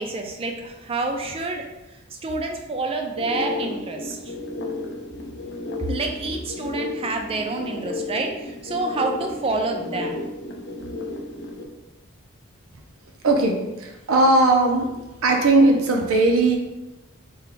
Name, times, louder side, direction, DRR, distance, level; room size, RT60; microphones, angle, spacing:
voice 1, 0.0-1.7 2.2-4.3 5.9-10.2, right 3 dB, 25° right, 3 dB, 0.3 m, -28 dB
sound 1, 3.2-11.7, left 2 dB, 55° left, 0.4 m, -33 dB
voice 2, 13.2-14.9 15.2-16.6, right 2 dB, 75° right, 3 dB, 0.6 m, -18 dB
3.4 x 2.2 x 3.7 m, 1.0 s
head